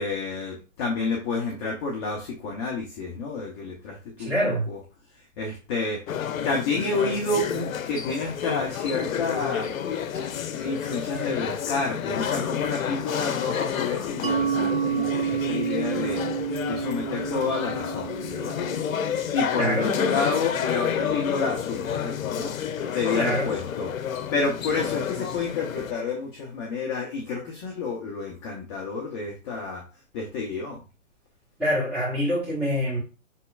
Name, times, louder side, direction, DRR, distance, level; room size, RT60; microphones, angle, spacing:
voice 1, 0.0-4.8 5.4-6.0 6.4-9.7 10.5-18.6 19.3-29.8 30.1-30.8, left 4 dB, 20° left, 0.5 m, -30 dB
voice 2, 4.2-4.7 19.5-19.9 23.1-23.5 31.6-33.0, equal, 5° right, 1.3 m, -25 dB
sound 1, 6.1-25.9, left 8 dB, 85° left, 0.6 m, -30 dB
Mallet percussion, 14.2-19.6, right 8 dB, 50° right, 0.6 m, -29 dB
5.5 x 3.0 x 2.3 m
hypercardioid pair, 140°, 40 cm